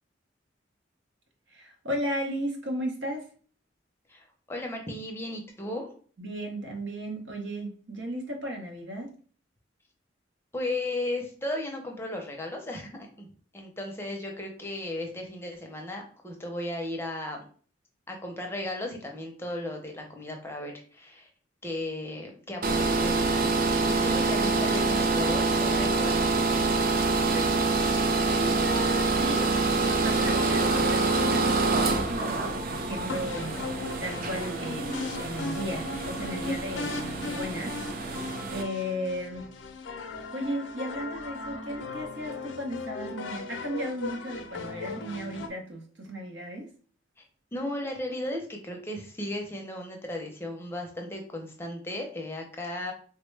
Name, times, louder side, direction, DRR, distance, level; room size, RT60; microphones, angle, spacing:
voice 1, 1.5-3.2 6.2-9.1 27.3-27.5 28.3-29.5 29.8-37.7 38.5-39.5 40.3-46.7, equal, 80° right, 2 dB, 0.8 m, -35 dB
voice 2, 4.1-5.9 10.5-13.3 13.5-17.4 18.1-21.3 21.6-23.5 23.8-26.7 47.2-47.3 47.5-52.9, left 1 dB, 15° left, 2 dB, 0.5 m, -35 dB
sound 1, 22.6-38.6, right 3 dB, 50° right, 0.4 m, -26 dB
sound 2, 28.4-45.5, left 3 dB, 80° left, 0.4 m, -38 dB
3.4 x 2.1 x 3.2 m, 0.43 s
head